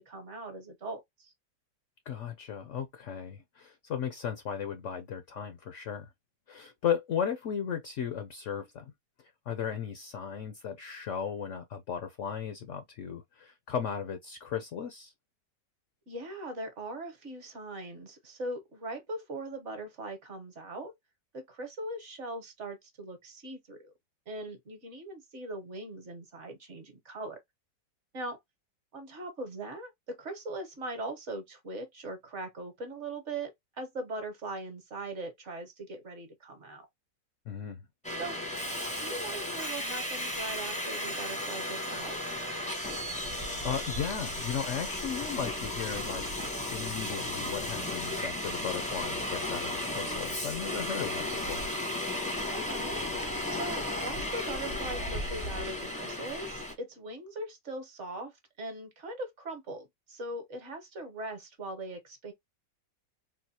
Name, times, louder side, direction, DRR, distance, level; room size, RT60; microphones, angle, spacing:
voice 1, 0.0-1.3 16.1-20.9 21.3-23.9 24.3-27.4 28.1-28.4 28.9-33.5 33.8-36.9 38.2-38.4 39.0-42.2 52.5-53.0 53.5-62.3, right 2 dB, 45° right, 1.2 m, -40 dB
voice 2, 2.1-6.1 6.5-8.8 9.5-15.1 37.5-37.8 43.2-46.2 46.7-51.7, left 8 dB, 65° left, 0.7 m, -36 dB
Subway metro underground, 38.0-56.7, left 1 dB, 5° left, 0.6 m, -34 dB
3.9 x 2.4 x 2.7 m
omnidirectional pair, 1.9 m